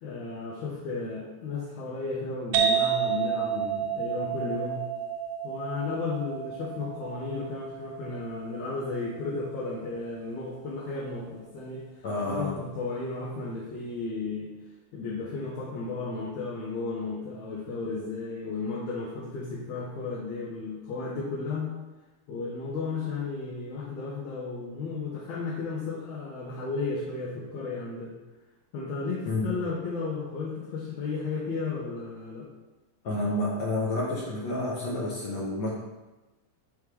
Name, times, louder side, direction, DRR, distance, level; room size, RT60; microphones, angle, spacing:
voice 1, 0.0-4.9 5.4-14.5 14.9-21.7 22.3-28.1 28.7-32.5, left 3 dB, 85° left, -7 dB, 2.4 m, -34 dB
sound 1, 2.5-10.0, right 8 dB, 75° right, 1.8 m, -31 dB
voice 2, 12.0-12.5 29.3-29.5 33.0-35.7, left 2 dB, 60° left, -5 dB, 1.3 m, -29 dB
6.4 x 3.6 x 4.8 m, 1.1 s
omnidirectional pair, 3.3 m